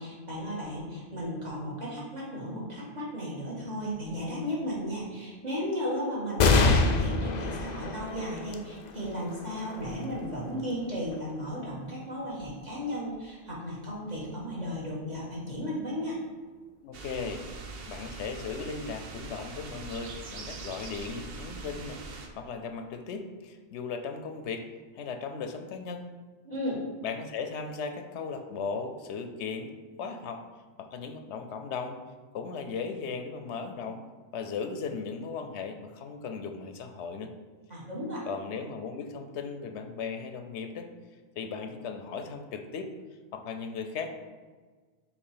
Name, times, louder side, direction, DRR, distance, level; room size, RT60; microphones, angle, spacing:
voice 1, 0.0-16.2 26.4-26.8 37.7-38.3, equal, 40° right, -7 dB, 1.9 m, -35 dB
sound 1, 6.4-13.3 13.9-14.0 15.1-15.7, left 3 dB, 55° left, 0.5 m, -29 dB
voice 2, 16.8-17.4 17.9-24.7 24.9-26.1 27.0-29.7 30.0-30.4 30.8-32.0 32.3-34.0 34.3-37.3 38.3-40.9 41.4-42.9 43.3-44.1, left 5 dB, 90° left, 7 dB, 0.9 m, -37 dB
sound 2, 16.9-22.3, right 4 dB, 65° right, 0.9 m, -42 dB
6.4 x 3.1 x 5.0 m, 1.4 s
omnidirectional pair, 1.1 m